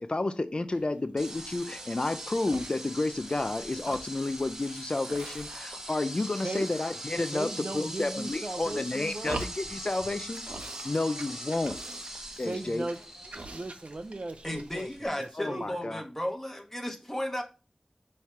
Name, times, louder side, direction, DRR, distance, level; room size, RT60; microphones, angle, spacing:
voice 1, 0.0-7.5 7.7-10.4 10.8-11.8 12.4-12.9 15.4-16.0, left 2 dB, 50° left, 0.5 m, -31 dB
sound 1, 0.7-1.1 1.6-2.2 2.5-3.5 3.7-5.9 6.2-6.9 7.2-8.0 8.5-10.0 10.3-10.9 11.2-14.9 15.2-15.3, right 2 dB, 90° right, 0.8 m, -45 dB
sound 2, 1.2-15.1, right 1 dB, 20° right, 1.2 m, -42 dB
voice 2, 6.4-6.7 7.3-9.4 12.4-13.0 13.3-15.9, right 2 dB, 60° right, 0.6 m, -38 dB
voice 3, 14.4-17.4, left 1 dB, 15° left, 1.4 m, -34 dB
5.7 x 3.2 x 5.6 m
wide cardioid pair, 50°, 2 cm